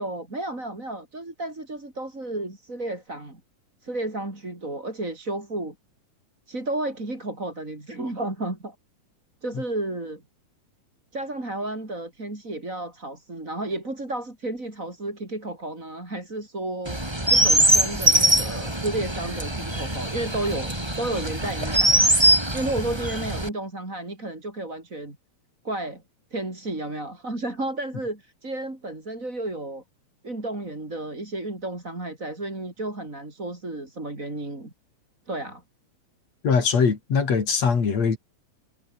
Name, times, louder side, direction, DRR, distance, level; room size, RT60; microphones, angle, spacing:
voice 1, 0.0-3.4 3.8-5.7 6.5-8.8 9.4-10.2 11.1-17.0 17.3-22.1 22.5-25.2 25.6-26.0 26.3-29.8 30.2-34.7 35.3-35.6, right 2 dB, 25° right, 5.7 m, -32 dB
Chirp tweet, 16.8-23.5, right 1 dB, 10° right, 3.6 m, -22 dB
voice 2, 36.4-38.2, left 5 dB, 55° left, 4.4 m, -22 dB
omnidirectional pair, 3.6 m